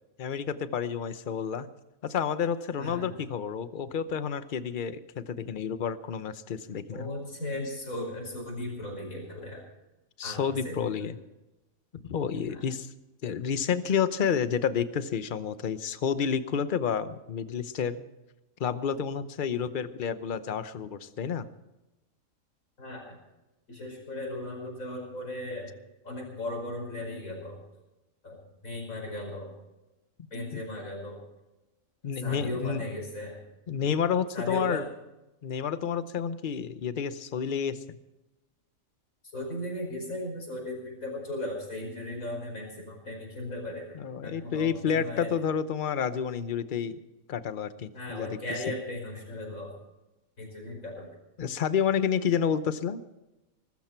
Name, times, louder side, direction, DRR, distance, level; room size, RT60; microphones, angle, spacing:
voice 1, 0.2-1.7 2.0-7.1 10.2-11.2 12.0-12.9 13.2-18.1 18.6-21.5 30.5-30.6 32.0-32.8 33.7-34.8 35.4-37.8 43.9-47.0 47.3-48.3 51.4-53.0, left 7 dB, 45° left, 13 dB, 0.9 m, -30 dB
voice 2, 2.8-3.1 6.9-9.6 10.2-11.1 12.5-12.6 22.8-23.2 23.7-25.7 26.0-27.6 28.2-28.4 28.6-29.5 30.3-31.2 32.2-33.4 34.3-34.9 39.3-44.0 44.2-45.3 47.9-49.7 50.4-51.1, left 1 dB, 80° left, 0 dB, 5.6 m, -36 dB
20.5 x 13.5 x 4.5 m, 1.0 s
omnidirectional pair, 1.4 m